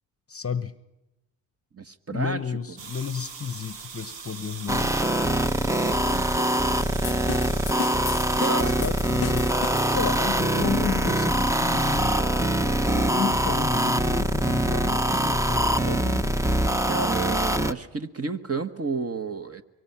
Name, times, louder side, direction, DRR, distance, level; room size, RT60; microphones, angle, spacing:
voice 1, 0.3-0.7 2.1-4.9 8.4-9.5 9.9-12.2 12.9-16.3, left 6 dB, 30° left, 16 dB, 1.0 m, -32 dB
voice 2, 1.7-2.4 5.8-6.3 6.6-6.9 8.4-8.7 16.8-19.6, right 4 dB, 30° right, 9 dB, 1.4 m, -31 dB
sound 1, 2.8-17.5, right 6 dB, 65° right, 1.7 m, -44 dB
sound 2, 4.7-17.7, right 1 dB, 5° right, 0.9 m, -23 dB
sound 3, 7.0-10.5, left 14 dB, 55° left, 0.7 m, -36 dB
24.5 x 23.5 x 5.8 m, 0.96 s
hypercardioid pair, 50°, 48 cm